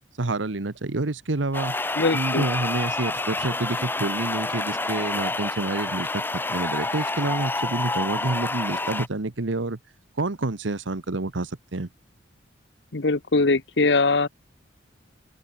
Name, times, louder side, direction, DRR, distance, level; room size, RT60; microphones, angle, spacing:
voice 1, 0.2-1.7 2.1-9.8 10.2-11.9, right 2 dB, 85° right, 1.2 m, -28 dB
sound 1, 1.5-9.1, left 2 dB, 10° left, 0.8 m, -28 dB
voice 2, 2.0-2.5 12.9-14.3, left 3 dB, 65° left, 1.0 m, -21 dB
head